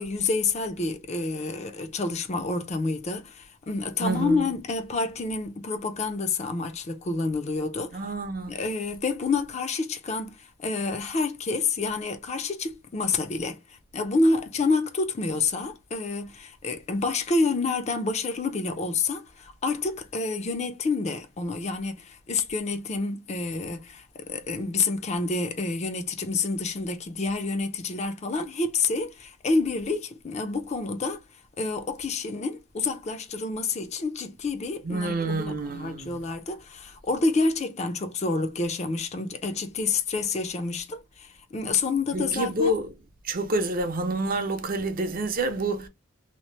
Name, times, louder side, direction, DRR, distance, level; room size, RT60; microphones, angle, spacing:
voice 1, 0.0-8.0 8.5-42.7, left 3 dB, 35° left, 0.4 m, -28 dB
voice 2, 4.0-4.4 7.9-8.6 34.8-36.3 42.1-42.9 43.2-45.9, right 2 dB, 45° right, 0.5 m, -28 dB
2.8 x 2.0 x 3.1 m
head